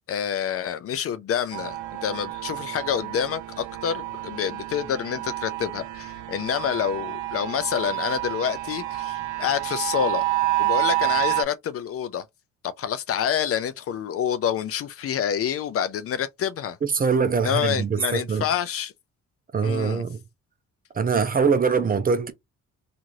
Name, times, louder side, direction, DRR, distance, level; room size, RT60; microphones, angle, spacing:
voice 1, 0.1-10.2 10.6-12.3 12.8-16.8 17.4-18.9 19.6-20.0, left 8 dB, 50° left, 0.4 m, -27 dB
sound 1, 1.5-11.4, right 18 dB, 70° right, 0.6 m, -29 dB
voice 2, 16.8-18.4 19.5-20.2 20.9-22.3, right 5 dB, 30° right, 0.6 m, -23 dB
2.9 x 2.5 x 2.6 m
cardioid pair, 90°, 30 cm